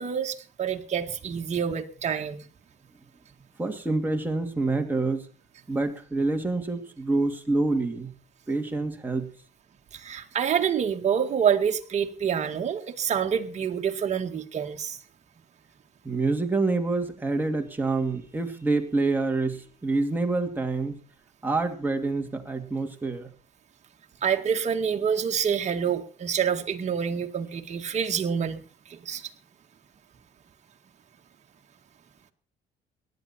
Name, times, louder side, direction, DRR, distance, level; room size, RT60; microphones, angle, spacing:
voice 1, 0.0-2.4 9.9-15.0 24.2-28.6 28.9-29.3, right 7 dB, 40° right, 4 dB, 1.9 m, -27 dB
voice 2, 3.6-5.3 5.7-8.1 8.5-9.3 16.0-21.0 21.4-23.3, right 3 dB, 10° right, 3 dB, 2.6 m, -27 dB
18.0 x 11.5 x 4.4 m, 0.38 s
cardioid pair, 110°, 17 cm